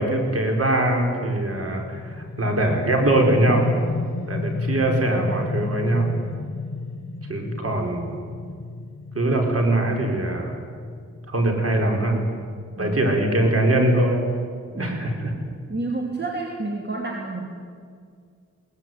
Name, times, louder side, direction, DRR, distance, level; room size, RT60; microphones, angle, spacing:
voice 1, 0.0-3.7 4.3-6.1 7.3-8.2 9.1-10.6 11.3-12.2 12.8-14.2 14.7-15.3, right 1 dB, 50° right, 1 dB, 5.0 m, -22 dB
sound 1, 1.6-13.1, left 3 dB, 60° left, 1.4 m, -31 dB
voice 2, 15.7-17.5, right 3 dB, 35° right, 0 dB, 3.0 m, -29 dB
22.0 x 18.0 x 9.5 m, 2.1 s
wide cardioid pair, 80°, 30 cm